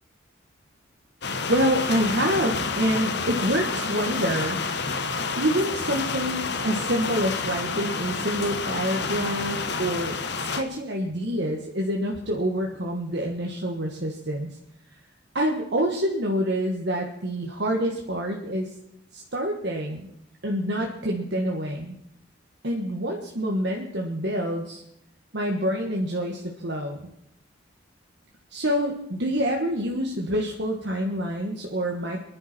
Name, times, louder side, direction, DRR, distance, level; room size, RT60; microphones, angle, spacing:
sound 1, 1.2-10.6, left 4 dB, 55° left, 1.0 m, -29 dB
voice 1, 1.5-4.7 5.4-14.6 15.3-18.7 19.1-20.1 20.4-21.9 22.6-24.8 25.3-27.1 28.5-32.2, equal, 55° right, 0 dB, 1.4 m, -27 dB
23.0 x 10.5 x 4.3 m, 0.78 s
head